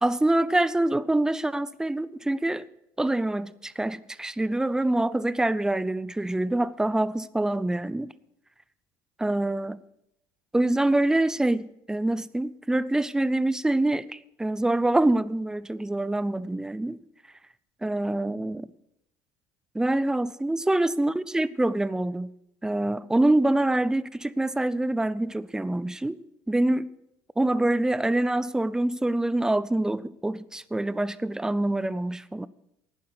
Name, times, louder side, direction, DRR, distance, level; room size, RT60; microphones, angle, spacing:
voice 1, 0.0-2.7 3.0-8.1 9.2-9.8 10.5-17.0 17.8-18.7 19.7-22.3 22.6-26.2 26.5-26.9 27.4-32.5, right 1 dB, 5° right, 0.5 m, -25 dB
11.5 x 9.4 x 6.2 m
supercardioid pair, 95°, 10 cm